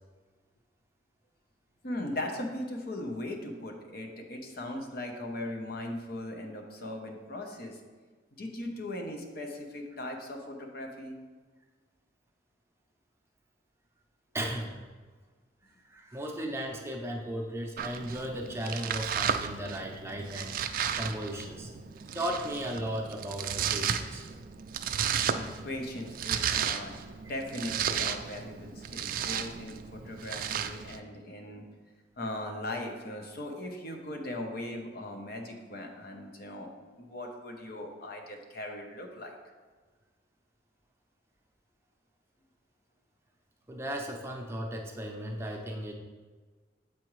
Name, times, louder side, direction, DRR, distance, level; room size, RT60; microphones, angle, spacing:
voice 1, 1.8-7.8 8.4-11.1 25.3-27.0 27.3-31.7 32.2-36.7 37.0-39.3, left 1 dB, 55° left, 3 dB, 0.8 m, -39 dB
voice 2, 14.3-14.7 15.9-21.7 22.1-24.2 43.7-45.9, right 1 dB, 15° right, 1 dB, 0.6 m, -36 dB
Domestic sounds home sounds, 17.8-31.0, right 8 dB, 50° right, 0.3 m, -34 dB
7.6 x 4.8 x 3.1 m, 1.4 s
head